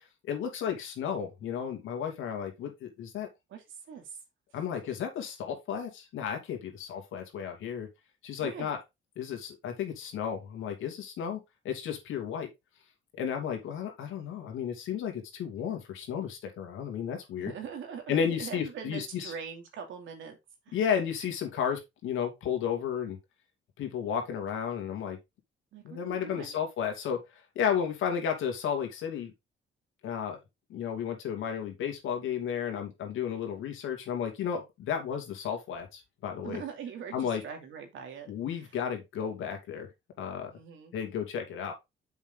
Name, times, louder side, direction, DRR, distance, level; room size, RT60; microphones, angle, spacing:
voice 1, 0.0-3.3 4.5-7.9 8.2-8.8 9.2-12.5 13.2-17.5 18.1-19.3 20.7-23.2 23.8-25.2 25.8-29.3 30.0-30.4 30.7-36.6 37.1-37.4 38.3-39.9 40.2-40.5 40.9-41.7, left 8 dB, 85° left, 2.5 m, -33 dB
voice 2, 3.5-4.2 8.4-8.7 17.4-20.4 20.7-20.8 25.7-26.6 36.4-38.7 40.5-40.9, right 7 dB, 80° right, 2.6 m, -42 dB
7.2 x 5.8 x 3.8 m
cardioid pair, 90°, 20 cm